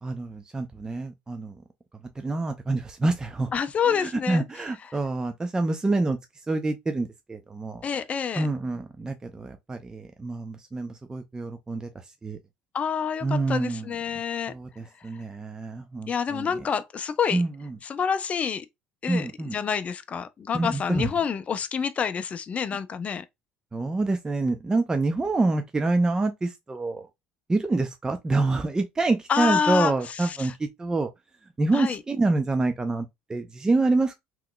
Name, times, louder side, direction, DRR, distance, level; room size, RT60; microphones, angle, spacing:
voice 1, 0.0-1.6 2.2-3.5 3.9-6.2 6.5-7.9 8.4-11.9 12.2-12.4 13.2-13.9 14.5-16.5 17.3-17.8 19.1-19.6 20.5-21.1 23.7-27.1 27.5-31.1 31.6-34.2, right 3 dB, 20° right, 0.5 m, -27 dB
voice 2, 3.5-4.4 4.9-5.0 7.8-8.5 12.7-14.5 15.0-15.2 16.1-17.4 17.8-18.7 19.0-23.2 29.3-30.5 31.7-32.0, left 7 dB, 35° left, 0.4 m, -28 dB
3.6 x 3.0 x 2.2 m
supercardioid pair, 80°, 4 cm